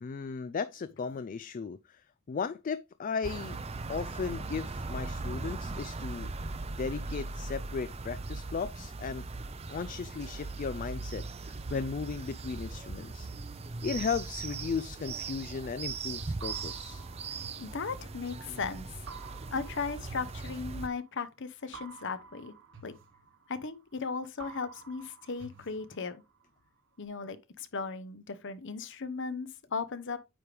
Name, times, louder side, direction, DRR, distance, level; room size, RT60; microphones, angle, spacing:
voice 1, 0.0-3.6 3.9-9.3 9.7-13.3 13.8-17.1, left 5 dB, 40° left, 0.3 m, -36 dB
sound 1, 3.2-20.9, right 3 dB, 30° right, 0.6 m, -39 dB
sound 2, 16.4-18.5 19.1-21.1 21.7-24.0 24.4-26.5, right 5 dB, 60° right, 1.6 m, -51 dB
voice 2, 17.6-18.9 19.5-22.5 22.8-22.9 23.5-26.2 27.0-30.2, left 4 dB, 60° left, 0.9 m, -37 dB
8.9 x 5.1 x 3.3 m
head